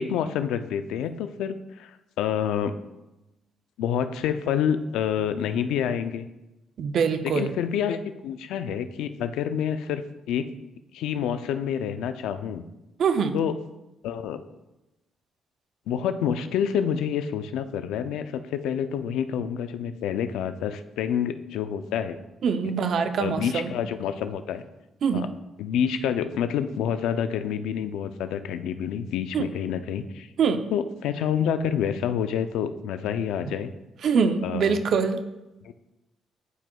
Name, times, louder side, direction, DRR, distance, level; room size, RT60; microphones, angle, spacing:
voice 1, 0.0-2.7 3.8-6.3 7.2-10.5 10.9-12.6 13.3-13.6 14.0-14.4 15.9-22.2 23.2-24.6 25.1-25.3 25.6-30.3 30.7-33.7 34.4-34.8 35.6-35.7, left 8 dB, 90° left, 10 dB, 0.4 m, -28 dB
voice 2, 6.8-7.5 13.0-13.4 22.4-23.7 25.0-25.3 29.3-29.5 30.4-30.6 34.0-35.2, right 6 dB, 65° right, 9 dB, 0.5 m, -24 dB
11.0 x 4.9 x 2.3 m, 0.98 s
cardioid pair, 90°, 0 cm